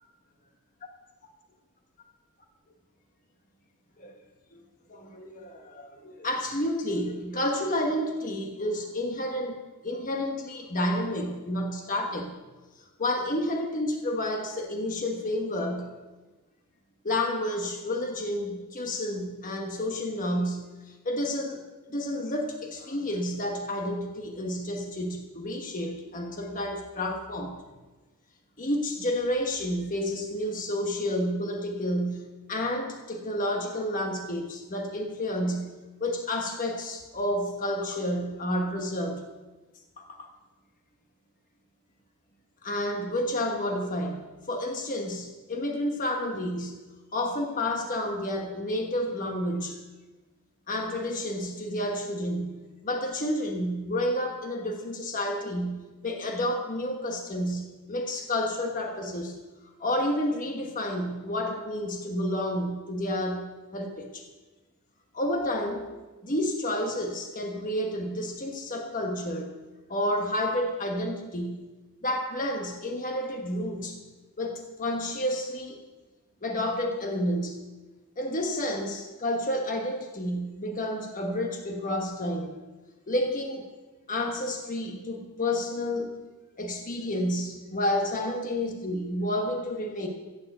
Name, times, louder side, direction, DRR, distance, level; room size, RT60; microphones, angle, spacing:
voice 1, 4.9-9.6 9.8-12.4 13.0-15.9 17.0-21.6 21.9-27.6 28.6-35.7 36.0-39.2 40.0-40.3 42.6-46.8 47.1-49.8 50.7-59.4 59.8-64.2 65.1-65.9 66.2-69.5 69.9-71.6 72.0-74.0 74.4-75.8 76.4-77.6 78.2-82.6 83.1-83.7 84.1-86.1 86.6-90.1, left 1 dB, 35° left, 3 dB, 1.2 m, -30 dB
15.0 x 7.1 x 7.8 m, 1.2 s
head